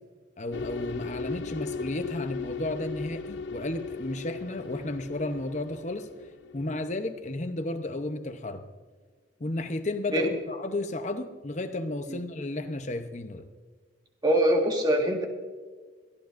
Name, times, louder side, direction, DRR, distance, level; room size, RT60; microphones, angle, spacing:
voice 1, 0.4-6.1 6.5-8.6 9.4-13.4, left 2 dB, 40° left, 7 dB, 0.8 m, -33 dB
sound 1, 0.5-7.6, left 4 dB, 70° left, 0.5 m, -38 dB
voice 2, 14.2-15.2, right 1 dB, 20° right, 1 dB, 1.7 m, -23 dB
22.5 x 13.5 x 2.6 m, 1.4 s
head